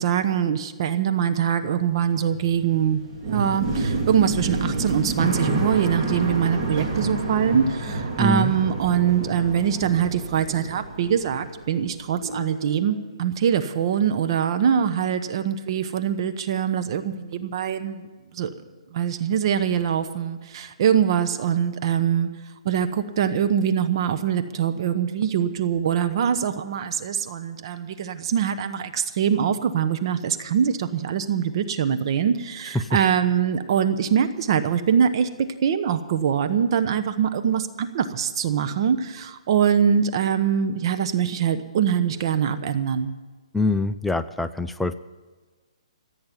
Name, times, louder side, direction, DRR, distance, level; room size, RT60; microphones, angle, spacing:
voice 1, 0.0-18.1 18.3-18.5 18.9-22.3 22.6-43.1, right 8 dB, 45° right, 10 dB, 1.0 m, -23 dB
sound 1, 1.8-11.9 12.2-13.0, right 2 dB, 30° right, 4.0 m, -29 dB
voice 2, 8.2-8.5 32.7-32.9 43.5-44.9, left 2 dB, 5° left, 11 dB, 0.4 m, -24 dB
15.5 x 8.6 x 9.3 m, 1.3 s
hypercardioid pair, 150°, 3 cm